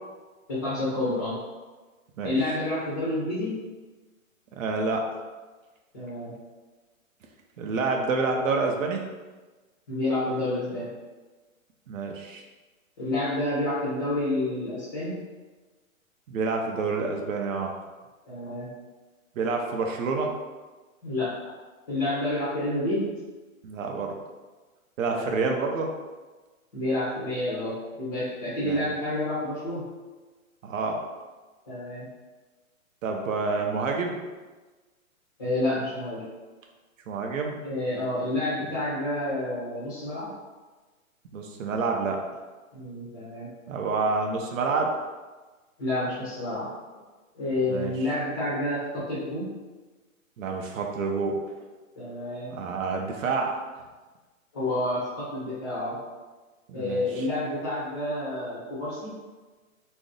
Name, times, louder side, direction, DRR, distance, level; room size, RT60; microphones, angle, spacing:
voice 1, 0.5-1.4 2.2-3.6 5.9-6.3 9.9-10.9 13.0-15.2 18.3-18.7 21.0-21.3 21.9-23.1 25.1-25.6 26.7-29.8 31.7-32.1 35.4-36.2 37.6-40.3 42.7-43.5 45.8-46.7 47.3-49.5 52.0-52.5 54.5-56.0 56.7-59.1, left 1 dB, 15° left, -10 dB, 0.6 m, -29 dB
voice 2, 4.6-5.0 7.6-9.0 11.9-12.4 16.3-17.7 19.4-20.3 23.6-24.1 25.0-25.9 28.6-28.9 30.6-31.0 33.0-34.2 37.1-37.5 41.3-42.2 43.7-44.9 47.7-47.9 50.4-51.4 52.5-53.6 56.7-57.2, right 4 dB, 65° right, 2 dB, 0.6 m, -28 dB
2.5 x 2.0 x 3.7 m, 1.3 s
hypercardioid pair, 160°, 42 cm